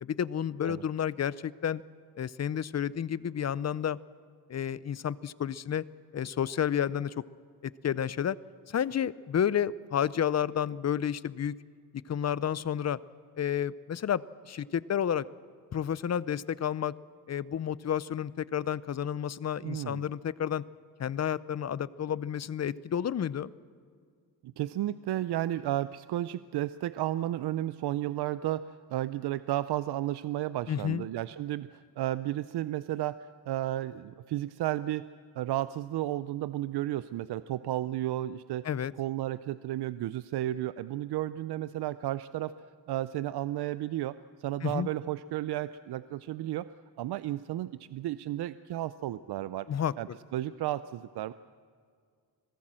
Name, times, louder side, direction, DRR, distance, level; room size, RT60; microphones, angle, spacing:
voice 1, 0.0-1.8 2.1-4.0 4.5-5.8 6.1-7.1 7.6-8.4 8.7-11.5 12.1-13.0 13.4-15.3 15.7-16.9 17.3-20.6 21.0-23.5 30.7-31.0 38.6-38.9 44.6-44.9 49.7-49.9, left 9 dB, 45° left, 19 dB, 0.6 m, -31 dB
voice 2, 19.6-20.0 24.4-35.0 35.4-38.7 39.0-42.5 42.9-49.7 50.0-50.1 50.3-51.3, right 14 dB, 85° right, 15 dB, 0.6 m, -33 dB
25.5 x 17.5 x 7.6 m, 2.1 s
cardioid pair, 100°, 38 cm